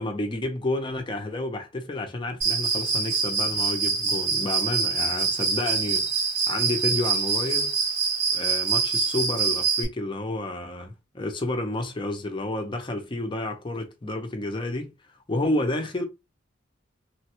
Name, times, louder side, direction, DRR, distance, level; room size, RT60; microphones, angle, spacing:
voice 1, 0.0-6.2 6.5-7.8 8.3-14.9 15.3-16.0, left 2 dB, 25° left, 0.5 m, -30 dB
Cricket, 2.4-9.9, right 5 dB, 80° right, 1.9 m, -25 dB
3.3 x 2.2 x 2.8 m
head